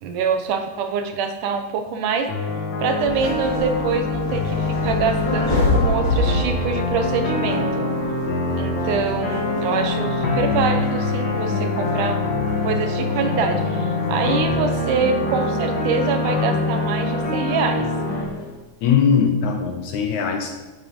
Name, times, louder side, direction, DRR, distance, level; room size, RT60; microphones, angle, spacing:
voice 1, 0.0-2.3 2.8-7.8 8.6-12.2 12.6-17.9, right 5 dB, 75° right, 6 dB, 2.2 m, -25 dB
sound 1, 2.3-18.2, left 2 dB, 45° left, 1.6 m, -24 dB
sound 2, 3.0-18.5, left 2 dB, 10° left, 2.6 m, -30 dB
voice 2, 18.8-20.5, left 6 dB, 75° left, 5 dB, 1.9 m, -20 dB
12.5 x 6.5 x 5.1 m, 1.2 s
omnidirectional pair, 3.9 m